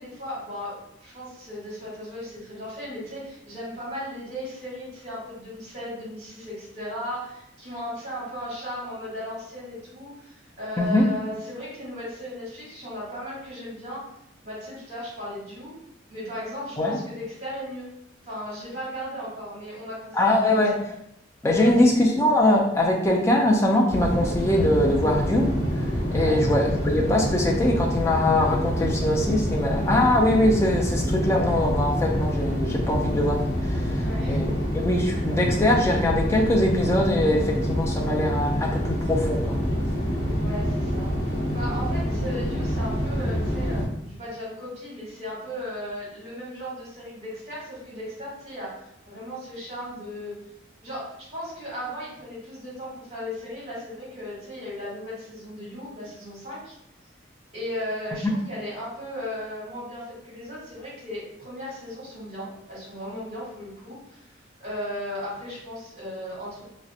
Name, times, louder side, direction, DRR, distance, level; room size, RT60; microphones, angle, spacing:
voice 1, 0.0-14.0 14.4-15.7 16.1-17.9 18.2-20.8 21.5-21.9 26.1-26.4 34.0-34.7 40.4-41.1 41.5-50.3 50.8-56.7 57.5-66.6, equal, 35° right, -8 dB, 1.3 m, -36 dB
voice 2, 10.8-11.1 16.8-17.0 20.1-20.8 21.4-25.6 26.1-39.8 58.2-58.3, left 1 dB, 15° left, 0 dB, 0.3 m, -22 dB
sound 1, 23.9-43.8, equal, 60° left, 0.9 m, -26 dB
2.4 x 2.0 x 2.7 m, 0.78 s
head